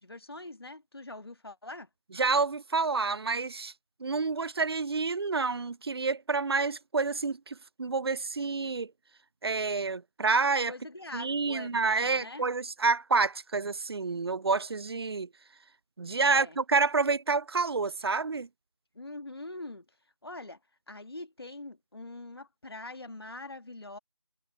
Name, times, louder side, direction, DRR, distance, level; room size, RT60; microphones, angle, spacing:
voice 1, 0.0-1.9 10.7-12.4 16.2-16.6 19.0-19.8 20.2-20.6 20.9-24.0, left 2 dB, 70° left, 1.8 m, -43 dB
voice 2, 2.1-3.7 4.0-8.9 9.4-10.7 11.1-15.3 16.0-18.5, right 4 dB, 70° right, 0.4 m, -28 dB
figure-of-eight pair, 175°, 13 cm